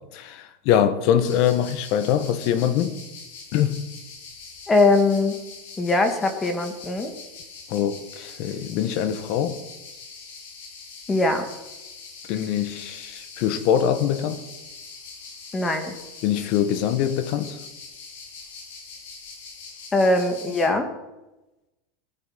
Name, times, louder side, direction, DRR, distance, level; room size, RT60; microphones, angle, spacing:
voice 1, 0.0-3.0 3.5-3.8 7.7-9.6 12.3-14.4 16.2-17.6, left 9 dB, 50° left, 1.4 m, -23 dB
sound 1, 1.2-20.7, left 4 dB, 80° left, 5.1 m, -43 dB
voice 2, 4.7-5.4 5.8-7.1 11.1-11.5 15.5-15.9 19.9-20.9, left 2 dB, 15° left, 2.2 m, -21 dB
19.5 x 9.8 x 6.0 m
supercardioid pair, 150°, 0 cm